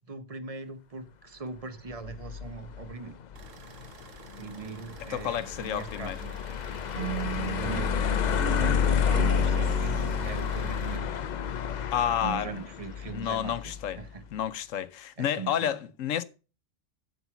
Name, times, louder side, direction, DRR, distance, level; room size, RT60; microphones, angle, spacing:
voice 1, 0.1-3.2 3.5-3.6 4.4-6.4 7.4-11.2 12.2-14.2 15.2-15.8, right 4 dB, 30° right, 1.0 m, -40 dB
sound 1, 1.9-14.1, left 8 dB, 55° left, 0.5 m, -30 dB
sound 2, 3.4-11.0, right 6 dB, 80° right, 1.2 m, -51 dB
voice 2, 5.1-6.2 11.9-12.5 13.0-14.0 14.3-16.2, left 10 dB, 80° left, 1.1 m, -30 dB
sound 3, 7.0-12.1, right 14 dB, 65° right, 1.0 m, -38 dB
8.1 x 7.9 x 5.8 m
omnidirectional pair, 1.3 m